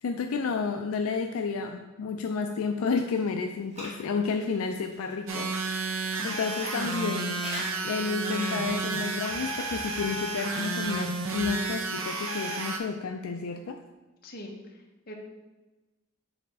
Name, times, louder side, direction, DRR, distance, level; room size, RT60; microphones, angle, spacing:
voice 1, 0.0-5.6 6.2-7.4 7.8-13.8, left 5 dB, 80° left, 5 dB, 0.4 m, -31 dB
sound 1, 3.0-5.7 6.5-11.8, equal, 30° right, 1.6 m, -43 dB
sound 2, 5.3-12.8, right 3 dB, 70° right, 0.7 m, -32 dB
voice 2, 11.9-12.6 14.2-15.1, equal, 45° left, 0 dB, 1.0 m, -45 dB
7.1 x 4.1 x 3.5 m, 1.1 s
head